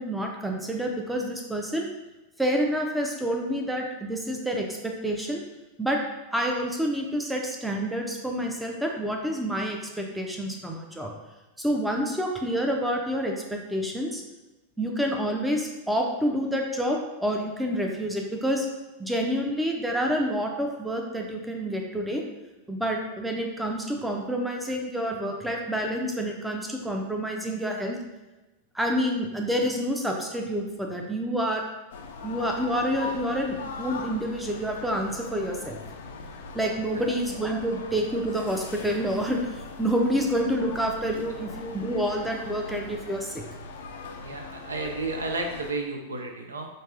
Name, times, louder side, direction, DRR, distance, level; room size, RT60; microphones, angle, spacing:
voice 1, 0.0-1.9 2.4-5.4 5.8-6.0 6.3-11.1 11.6-14.2 14.8-18.7 19.0-22.2 22.7-28.0 28.7-31.6 32.2-35.8 36.5-43.4, equal, 5° right, 1 dB, 0.5 m, -28 dB
sound 1, 31.9-45.7, left 4 dB, 60° left, 0.4 m, -40 dB
voice 2, 44.2-46.7, right 3 dB, 75° right, 3 dB, 0.5 m, -32 dB
5.3 x 2.6 x 2.4 m, 1.1 s
figure-of-eight pair, 90°, 0 cm